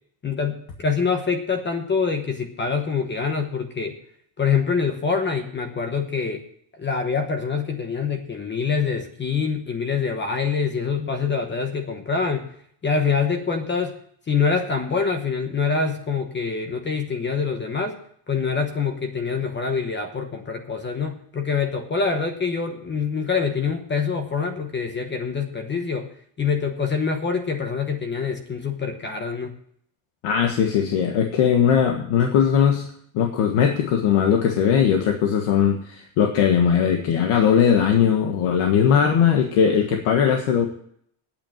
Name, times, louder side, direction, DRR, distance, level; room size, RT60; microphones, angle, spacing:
voice 1, 0.2-4.0 4.4-6.4 6.8-12.5 12.8-14.0 14.3-18.0 18.3-26.1 26.4-29.5, left 5 dB, 20° left, 6 dB, 1.0 m, -25 dB
voice 2, 30.2-32.9 33.1-40.7, left 8 dB, 85° left, 3 dB, 1.6 m, -19 dB
8.8 x 8.6 x 8.9 m, 0.66 s
cardioid pair, 170°, 49 cm